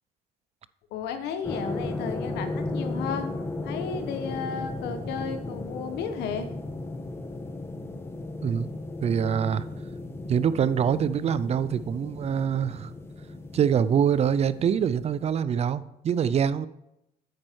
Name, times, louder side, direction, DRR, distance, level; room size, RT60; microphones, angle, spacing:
voice 1, 0.9-3.3 3.6-6.5, left 6 dB, 85° left, 8 dB, 1.2 m, -33 dB
sound 1, 1.4-15.4, left 2 dB, 15° left, 1.1 m, -35 dB
voice 2, 9.0-9.7 10.3-12.9 13.5-16.7, right 8 dB, 40° right, 16 dB, 0.4 m, -24 dB
8.8 x 7.8 x 4.5 m, 0.86 s
cardioid pair, 110°, 17 cm